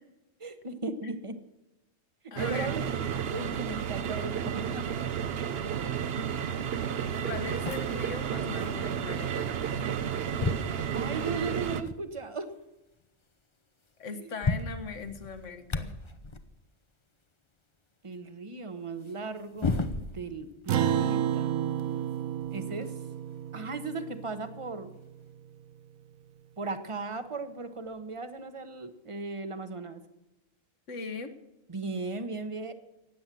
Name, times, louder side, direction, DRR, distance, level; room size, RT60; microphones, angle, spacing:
voice 1, 0.4-1.4 2.2-4.9 5.8-5.9 10.9-12.5 14.1-14.3 18.0-19.8 20.0-21.5 22.5-22.9 23.5-24.9 26.6-30.0 31.7-32.7, right 3 dB, 25° right, 10 dB, 1.0 m, -37 dB
voice 2, 2.3-2.7 7.2-9.5 14.0-16.0 30.9-31.3, left 4 dB, 65° left, 9 dB, 1.6 m, -39 dB
sound 1, 2.4-11.8, right 8 dB, 55° right, 0.8 m, -32 dB
sound 2, 6.5-6.6 7.1-10.0 10.3-12.1 12.6-12.7 12.9-13.1 13.9-14.0 14.2-16.5 19.0-20.5 20.8-23.1 24.1-24.2 25.2-25.3, left 3 dB, 30° left, 0.7 m, -36 dB
Acoustic guitar, 20.7-25.4, right 10 dB, 80° right, 1.2 m, -31 dB
16.0 x 9.5 x 7.6 m, 0.98 s
omnidirectional pair, 1.4 m